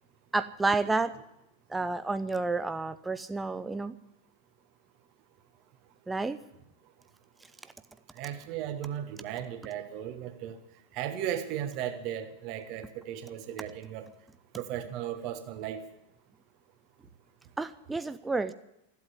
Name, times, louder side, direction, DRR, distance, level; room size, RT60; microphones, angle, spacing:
voice 1, 0.3-1.1 1.7-4.0 6.1-6.4 17.6-18.5, right 3 dB, 10° right, 12 dB, 0.6 m, -30 dB
voice 2, 8.1-10.6 10.9-14.1 14.5-15.8, right 10 dB, 40° right, 9 dB, 1.5 m, -36 dB
14.5 x 8.5 x 9.7 m, 0.85 s
figure-of-eight pair, 90°, 0 cm